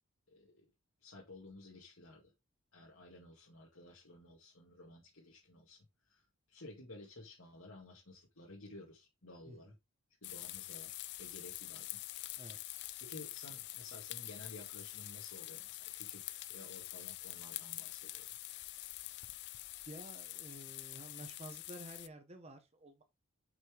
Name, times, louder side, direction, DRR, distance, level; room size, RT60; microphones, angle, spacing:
voice 1, 0.3-0.7 1.0-2.3 2.7-9.7 10.2-10.9 11.2-12.0 13.0-18.3, left 2 dB, 70° left, 2.2 m, -54 dB
sound 1, 10.2-22.1, left 17 dB, 50° left, 0.4 m, -46 dB
voice 2, 19.9-23.0, right 1 dB, 30° right, 1.2 m, -51 dB
6.1 x 5.6 x 4.9 m
head